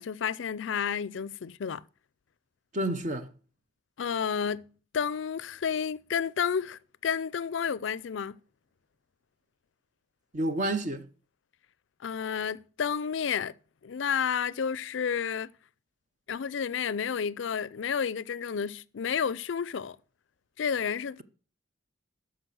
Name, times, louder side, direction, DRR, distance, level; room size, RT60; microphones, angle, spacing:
voice 1, 0.0-1.8 4.0-4.7 4.9-8.4 12.0-13.5 13.8-15.5 16.3-20.0 20.6-21.2, left 7 dB, 65° left, 0.4 m, -31 dB
voice 2, 2.7-3.3 10.3-11.1, right 1 dB, 40° right, 0.9 m, -29 dB
12.5 x 5.1 x 6.3 m
head